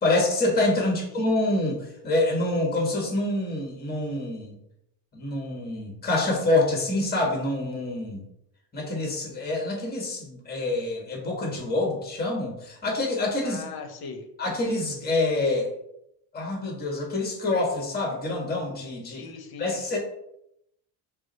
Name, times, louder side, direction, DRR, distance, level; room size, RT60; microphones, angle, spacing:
voice 1, 0.0-4.5 5.1-8.2 8.7-13.6 14.4-15.7 16.3-19.2 19.6-20.0, left 2 dB, 20° left, 0 dB, 1.5 m, -26 dB
voice 2, 13.4-14.3 19.0-19.8, left 5 dB, 45° left, 6 dB, 0.9 m, -40 dB
4.6 x 2.1 x 4.0 m, 0.79 s
supercardioid pair, 85°, 50 cm